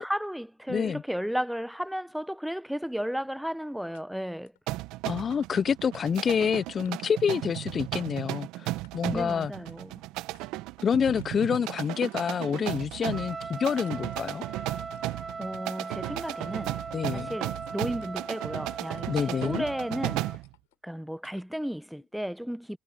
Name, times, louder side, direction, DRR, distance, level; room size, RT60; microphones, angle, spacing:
voice 1, 0.0-4.5 9.1-9.9 15.1-16.8 17.1-20.3 20.8-22.8, equal, ahead, 1.0 m, -34 dB
voice 2, 0.7-1.0 5.0-9.5 10.8-14.5 16.9-17.4 19.1-19.6, left 7 dB, 45° left, 0.7 m, -27 dB
sound 1, 3.9-4.0 4.5-4.6 5.2-5.6 5.9-6.4 6.8-6.9 7.3-7.7 8.0-8.4 8.8-9.2 9.7-9.9 10.3-10.4 11.2-11.6 12.1-12.2 12.8-12.9 13.3-13.4 13.9-14.3 14.9-15.3 15.7-15.8 16.3-16.5 16.8-18.5 18.9-19.7 20.2-20.8 21.2-21.5, left 20 dB, 85° left, 4.3 m, -61 dB
sound 2, 4.7-20.5, right 18 dB, 70° right, 1.5 m, -35 dB
Trumpet, 13.0-20.4, right 4 dB, 30° right, 1.6 m, -40 dB
hypercardioid pair, 60°, 0 cm